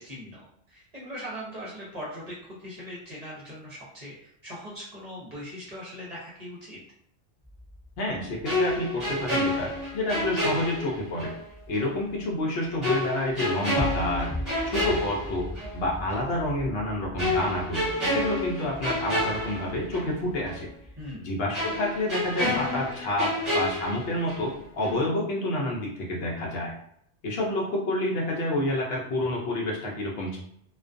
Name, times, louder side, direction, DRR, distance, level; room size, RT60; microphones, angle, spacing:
voice 1, 0.0-6.8 21.0-21.3, equal, 45° right, -6 dB, 0.6 m, -40 dB
sound 1, 7.4-12.8 13.2-13.4 13.7-21.1, equal, 20° left, 0.4 m, -40 dB
voice 2, 8.0-11.3 11.7-14.3 14.6-15.5 15.7-20.7 21.2-26.7 27.2-30.4, left 1 dB, 65° left, -2 dB, 0.7 m, -29 dB
sound 2, 8.4-11.4 11.7-11.9 12.8-15.8 16.1-16.3 17.2-20.2 20.5-20.6 21.5-24.6 24.8-25.1, left 1 dB, ahead, 1.1 m, -29 dB
2.3 x 2.1 x 2.4 m, 0.70 s
omnidirectional pair, 1.2 m